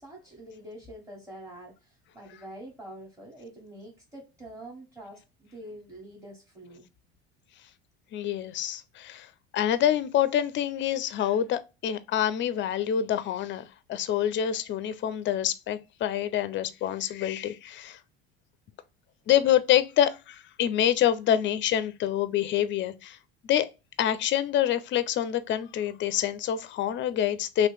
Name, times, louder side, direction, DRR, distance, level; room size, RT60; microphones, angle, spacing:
voice 1, 0.0-6.8, right 1 dB, 10° right, 1.5 m, -45 dB
voice 2, 8.1-9.3 9.5-18.0 19.3-23.2 23.4-23.7 24.0-27.7, left 10 dB, 40° left, 0.5 m, -26 dB
2.9 x 2.6 x 3.3 m
hypercardioid pair, 80°, 31 cm